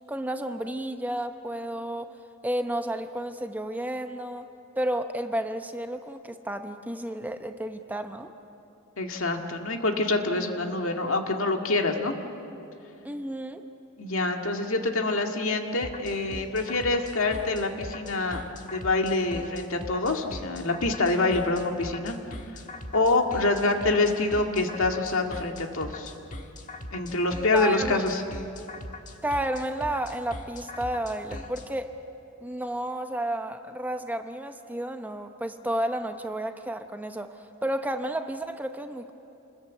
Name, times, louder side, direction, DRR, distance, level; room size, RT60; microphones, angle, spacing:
voice 1, 0.1-2.1 2.4-4.5 4.8-8.3 13.0-13.6 27.5-28.0 29.2-31.9 32.4-39.1, right 1 dB, 10° right, 7 dB, 0.8 m, -31 dB
voice 2, 9.0-12.1 14.0-18.4 18.7-22.2 22.9-26.1 26.9-28.2, left 2 dB, 65° left, 3 dB, 2.0 m, -26 dB
sound 1, 15.8-31.7, left 1 dB, 35° left, 1.5 m, -40 dB
28.0 x 20.5 x 8.3 m, 2.7 s
head